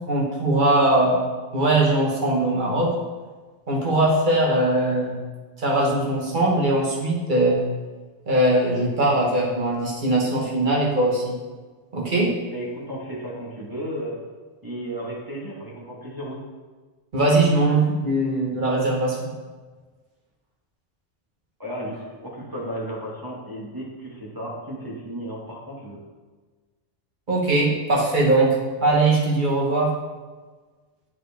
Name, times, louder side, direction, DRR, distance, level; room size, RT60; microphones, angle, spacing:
voice 1, 0.1-1.2 1.5-2.9 3.7-5.2 5.6-7.6 8.3-11.4 11.9-12.3 17.1-19.3 27.3-28.5 28.8-29.9, right 2 dB, 50° right, -3 dB, 1.4 m, -20 dB
voice 2, 12.5-14.2 14.6-16.4 21.6-26.0, right 1 dB, 20° right, -5 dB, 1.2 m, -34 dB
7.4 x 4.5 x 3.4 m, 1.4 s
omnidirectional pair, 1.1 m